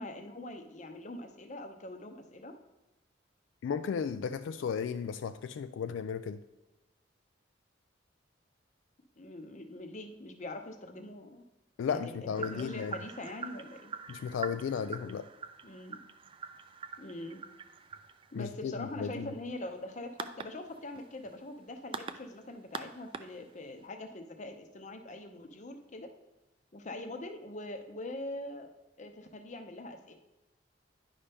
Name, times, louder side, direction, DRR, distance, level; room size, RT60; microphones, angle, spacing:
voice 1, 0.0-2.6 9.2-11.4 11.9-13.9 15.6-16.0 17.0-17.4 18.3-26.1 26.7-28.7 29.0-30.1, left 1 dB, 40° left, 6 dB, 0.7 m, -43 dB
voice 2, 3.6-6.4 11.8-12.9 14.1-15.3 18.3-19.3, left 6 dB, 80° left, 10 dB, 0.3 m, -34 dB
sound 1, 12.3-23.8, right 5 dB, 30° right, 0.3 m, -45 dB
10.0 x 5.5 x 3.4 m, 1.0 s
head